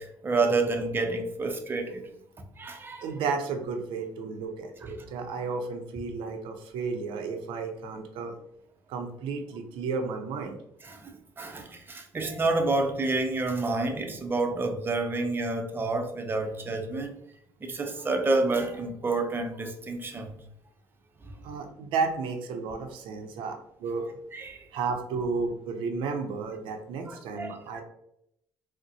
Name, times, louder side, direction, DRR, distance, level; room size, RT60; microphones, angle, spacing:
voice 1, 0.0-2.1 2.6-3.0 10.8-17.2 17.6-20.3 21.2-21.3 24.3-24.6 27.1-27.5, right 3 dB, 25° right, 4 dB, 0.6 m, -29 dB
voice 2, 3.0-8.4 8.9-10.6 21.4-23.5 23.8-24.1 24.7-27.8, right 4 dB, 80° right, 5 dB, 0.6 m, -32 dB
3.9 x 2.1 x 2.7 m, 0.75 s
supercardioid pair, 80°, 8 cm